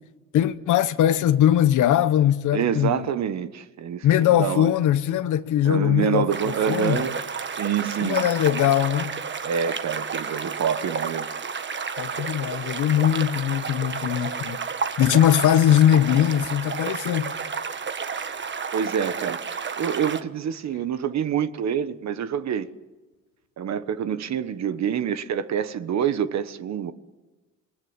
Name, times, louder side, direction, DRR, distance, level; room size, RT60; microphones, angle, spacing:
voice 1, 0.3-3.0 4.0-7.1 8.0-9.2 12.0-14.6 15.0-17.4, left 11 dB, 80° left, 1.1 m, -21 dB
voice 2, 2.5-4.7 5.6-7.1 7.5-8.2 9.4-11.3 18.7-22.7 23.6-26.9, right 8 dB, 65° right, 1.3 m, -27 dB
sound 1, 6.3-20.2, right 5 dB, 40° right, 1.4 m, -31 dB
28.0 x 19.5 x 9.6 m
cardioid pair, 90°, 30 cm